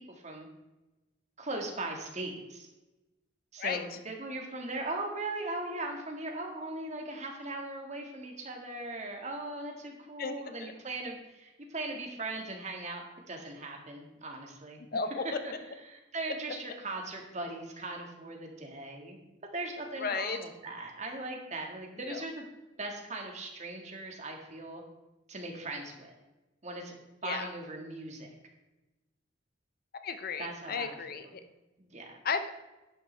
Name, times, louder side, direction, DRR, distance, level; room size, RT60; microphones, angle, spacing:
voice 1, 1.4-2.7 3.5-14.8 15.4-15.5 15.9-19.2 19.5-22.4 22.8-24.8 25.3-26.1 26.6-26.9 27.2-28.3 30.4-31.3 31.8-32.2, right 2 dB, 35° right, 2 dB, 1.7 m, -39 dB
voice 2, 14.9-15.4 20.0-20.4 22.1-22.2 27.2-27.5 30.0-31.4 32.2-32.5, left 5 dB, 50° left, 9 dB, 0.6 m, -33 dB
11.0 x 9.0 x 3.3 m, 1.1 s
head